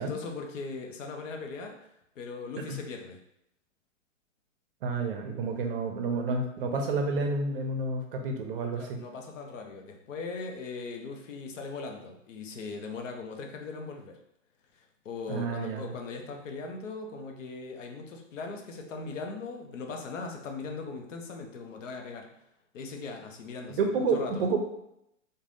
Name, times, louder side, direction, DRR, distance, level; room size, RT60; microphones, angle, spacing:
voice 1, 0.0-1.8 2.2-3.2 8.7-14.2 14.7-22.3 22.7-24.5, left 4 dB, 75° left, 3 dB, 0.7 m, -39 dB
voice 2, 4.8-9.0 15.3-15.8 23.8-24.6, right 3 dB, 45° right, 3 dB, 0.5 m, -29 dB
3.2 x 2.2 x 2.5 m, 0.79 s
hypercardioid pair, 135°, 39 cm